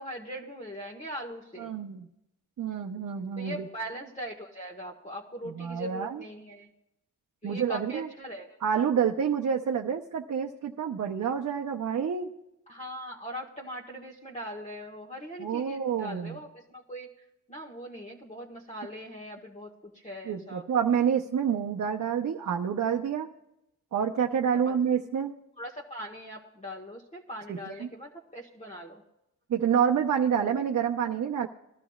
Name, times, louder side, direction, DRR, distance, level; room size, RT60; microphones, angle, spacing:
voice 1, 0.0-1.7 3.4-6.7 7.4-8.5 12.7-17.1 17.5-20.7 24.5-24.8 25.6-29.0, equal, 20° left, -2 dB, 1.3 m, -41 dB
voice 2, 1.6-2.1 2.6-3.7 5.6-6.2 7.4-8.1 8.6-12.3 15.4-16.3 20.3-23.3 23.9-25.3 27.5-27.9 29.5-31.5, right 7 dB, 60° right, 1 dB, 0.7 m, -28 dB
19.5 x 12.0 x 2.4 m, 0.87 s
cardioid pair, 70°, 33 cm